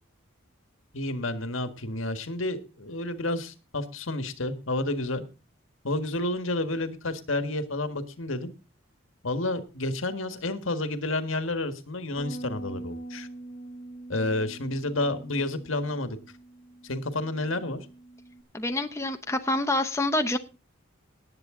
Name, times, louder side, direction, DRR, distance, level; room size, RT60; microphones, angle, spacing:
voice 1, 0.9-5.2 5.8-8.5 9.2-13.3 14.1-16.2 16.8-17.8, left 2 dB, 75° left, 1.6 m, -30 dB
Bass guitar, 12.2-18.4, right 2 dB, 55° left, 1.9 m, -43 dB
voice 2, 18.5-20.4, left 2 dB, 15° left, 0.8 m, -27 dB
18.5 x 8.1 x 3.8 m
head